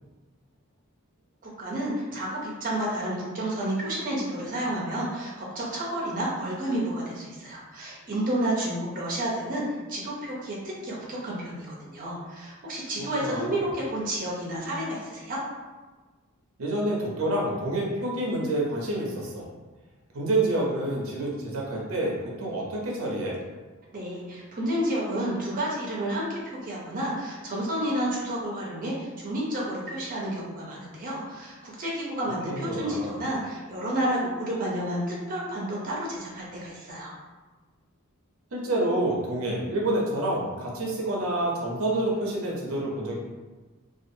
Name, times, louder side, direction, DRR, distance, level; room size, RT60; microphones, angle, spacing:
voice 1, 1.4-15.4 23.9-37.1, right 1 dB, 40° right, -4 dB, 0.6 m, -30 dB
voice 2, 13.2-13.6 16.6-19.5 20.1-23.4 32.4-33.1 38.5-43.2, right 1 dB, 80° right, -3 dB, 0.6 m, -28 dB
2.5 x 2.4 x 2.6 m, 1.3 s
head